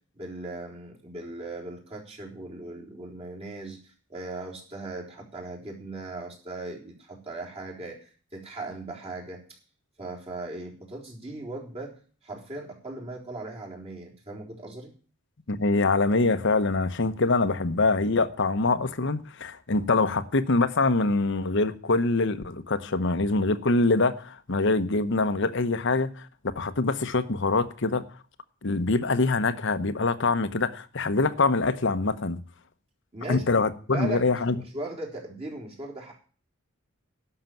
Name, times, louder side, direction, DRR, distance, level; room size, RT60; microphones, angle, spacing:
voice 1, 0.1-9.4 10.0-11.9 12.2-14.9 33.1-33.4 33.9-34.3 34.6-36.2, right 2 dB, 30° right, 3.9 m, -38 dB
voice 2, 15.5-26.3 26.5-28.0 28.6-32.4 33.3-34.6, left 3 dB, 65° left, 1.0 m, -24 dB
11.5 x 6.7 x 9.1 m
head